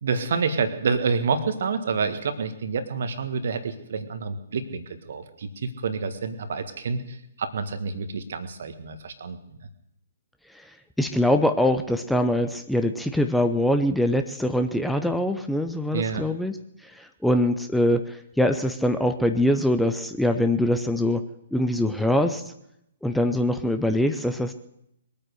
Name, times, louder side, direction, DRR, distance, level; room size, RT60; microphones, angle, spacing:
voice 1, 0.0-9.4 15.9-16.3, right 5 dB, 55° right, 9 dB, 1.7 m, -28 dB
voice 2, 11.0-16.6 16.8-21.2 21.5-22.5 23.0-24.5, left 1 dB, ahead, 7 dB, 0.7 m, -23 dB
22.0 x 8.8 x 6.5 m, 0.80 s
figure-of-eight pair, 125°, 0 cm